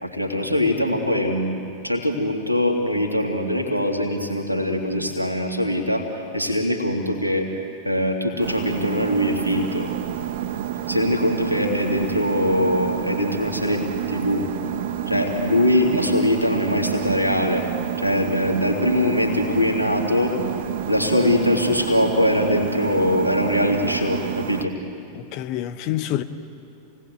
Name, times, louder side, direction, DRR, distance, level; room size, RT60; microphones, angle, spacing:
voice 1, 0.0-7.5 7.8-9.9 10.9-14.4 15.1-17.6 18.0-20.3 20.9-24.7, left 1 dB, 90° right, 2.6 m, -22 dB
sound 1, 8.4-24.7, right 10 dB, 55° right, 1.0 m, -29 dB
voice 2, 25.1-26.2, left 13 dB, 45° left, 1.0 m, -27 dB
28.0 x 18.5 x 7.9 m
figure-of-eight pair, 90°, 0 cm